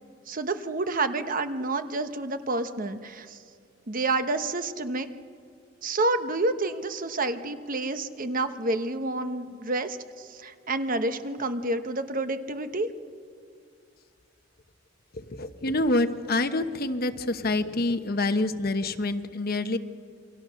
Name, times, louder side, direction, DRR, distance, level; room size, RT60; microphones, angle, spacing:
voice 1, 0.3-3.4 3.9-5.1 5.8-12.9, right 2 dB, 45° right, 9 dB, 1.1 m, -29 dB
voice 2, 15.1-19.8, left 2 dB, 50° left, 9 dB, 1.0 m, -27 dB
28.5 x 24.0 x 6.4 m, 2.2 s
head